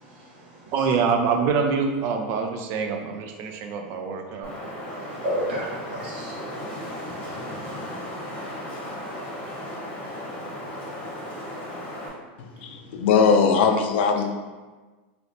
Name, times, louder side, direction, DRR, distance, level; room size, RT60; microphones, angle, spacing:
voice 1, 0.0-0.7 4.9-7.8, equal, 85° right, -5 dB, 1.1 m, -34 dB
voice 2, 0.7-4.5, right 5 dB, 45° right, 4 dB, 0.4 m, -25 dB
Wind, 4.4-12.1, left 1 dB, 25° left, 1.0 m, -35 dB
voice 3, 12.4-14.2, left 5 dB, 75° left, 4 dB, 0.4 m, -20 dB
3.2 x 2.8 x 2.6 m, 1.3 s
supercardioid pair, 140°, 6 cm